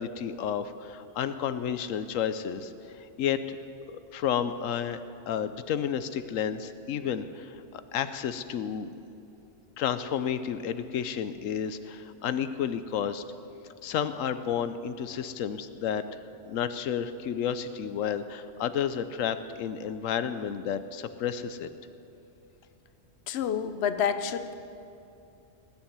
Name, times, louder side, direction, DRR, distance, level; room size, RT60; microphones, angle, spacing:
voice 1, 0.0-3.6 3.8-8.9 9.8-13.2 13.8-21.7, left 8 dB, 85° left, 12 dB, 1.1 m, -31 dB
voice 2, 23.3-24.5, left 7 dB, 60° left, 10 dB, 1.0 m, -28 dB
20.0 x 7.2 x 9.5 m, 2.7 s
omnidirectional pair, 1.3 m